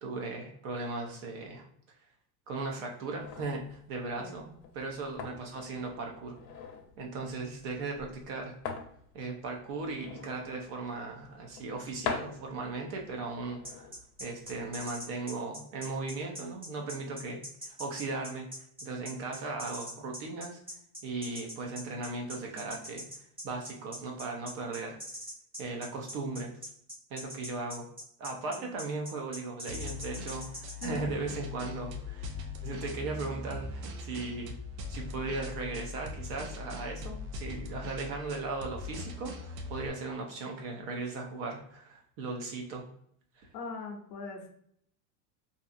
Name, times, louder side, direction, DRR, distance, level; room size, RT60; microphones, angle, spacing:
voice 1, 0.0-1.7 2.5-4.5 4.7-6.4 7.0-8.5 9.1-13.9 14.2-18.5 18.8-20.6 21.0-23.0 23.4-25.0 25.6-26.5 27.1-27.9 28.2-32.4 32.6-34.5 34.9-42.9 43.4-43.5, right 3 dB, 40° right, 1 dB, 0.5 m, -37 dB
sound 1, 3.2-15.0, left 6 dB, 80° left, 0.7 m, -45 dB
voice 2, 4.2-4.6 28.5-28.7 30.8-31.1 43.5-44.5, left 3 dB, 45° left, 2 dB, 0.6 m, -41 dB
sound 2, 13.6-30.9, equal, 10° right, 0.8 m, -42 dB
sound 3, 29.7-39.9, left 3 dB, 90° right, 0.7 m, -41 dB
2.7 x 2.3 x 2.5 m, 0.67 s
supercardioid pair, 160°, 49 cm